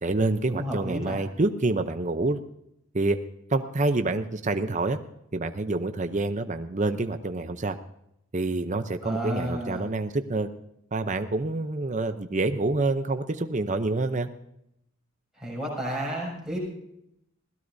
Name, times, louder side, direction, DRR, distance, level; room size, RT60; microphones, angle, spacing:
voice 1, 0.0-2.4 2.9-3.2 3.5-5.0 5.3-7.8 8.3-10.5 10.9-14.3, right 2 dB, 35° right, 8 dB, 0.7 m, -27 dB
voice 2, 0.5-1.2 9.0-9.8 15.4-16.6, right 1 dB, 5° right, -4 dB, 6.8 m, -32 dB
20.5 x 17.0 x 2.7 m, 0.79 s
head